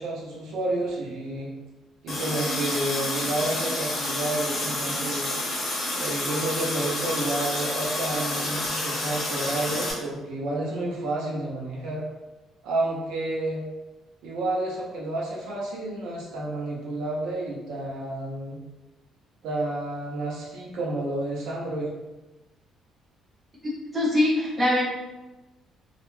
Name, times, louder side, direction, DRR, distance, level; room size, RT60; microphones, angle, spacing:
voice 1, 0.0-1.5 2.0-5.4 5.9-12.0 12.6-13.6 14.2-18.6 19.4-21.9, right 2 dB, 75° right, -3 dB, 0.6 m, -30 dB
Water tap faucet, 2.1-9.9, left 1 dB, 30° left, 0.6 m, -29 dB
voice 2, 23.9-24.8, left 1 dB, 15° right, -5 dB, 0.6 m, -22 dB
2.3 x 2.1 x 3.1 m, 1.1 s
cardioid pair, 180°, 0 cm